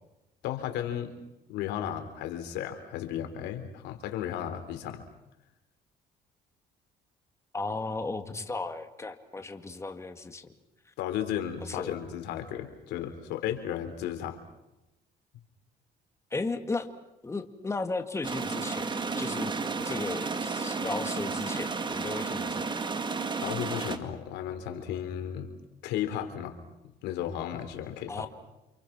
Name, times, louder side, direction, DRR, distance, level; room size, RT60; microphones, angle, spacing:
voice 1, 0.4-1.1 1.5-5.1 11.0-14.4 23.4-25.5 25.8-26.6 27.0-28.3, left 10 dB, 90° left, 8 dB, 3.7 m, -34 dB
voice 2, 7.5-10.5 11.6-11.9 16.3-16.9 17.2-19.5 19.8-22.7 28.1-28.3, left 3 dB, 15° left, 7 dB, 2.0 m, -35 dB
sound 1, 18.2-24.0, right 4 dB, 25° right, 2.2 m, -32 dB
29.5 x 27.5 x 6.0 m, 0.95 s
cardioid pair, 110°, 17 cm